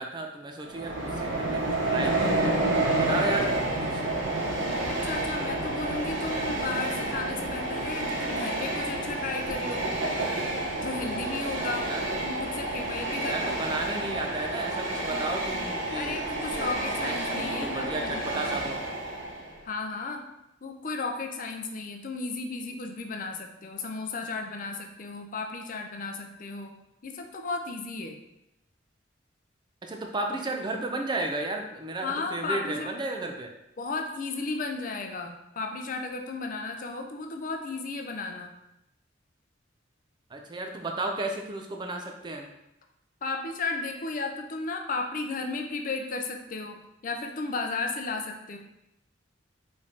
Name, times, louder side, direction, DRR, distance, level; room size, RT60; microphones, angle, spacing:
voice 1, 0.0-2.6 3.0-3.5 3.8-4.1 11.8-12.2 13.2-16.2 16.5-16.7 17.0-18.8 29.8-33.5 40.3-42.5, right 2 dB, 20° right, 3 dB, 0.3 m, -33 dB
Train, 0.7-19.6, right 2 dB, 75° right, 0.9 m, -30 dB
voice 2, 4.8-9.9 10.8-11.9 12.2-13.8 15.9-18.6 19.7-20.2 20.6-26.7 27.0-28.2 32.0-32.9 33.8-38.5 43.2-48.6, left 3 dB, 40° left, 4 dB, 0.5 m, -34 dB
4.9 x 3.2 x 2.8 m, 0.86 s
head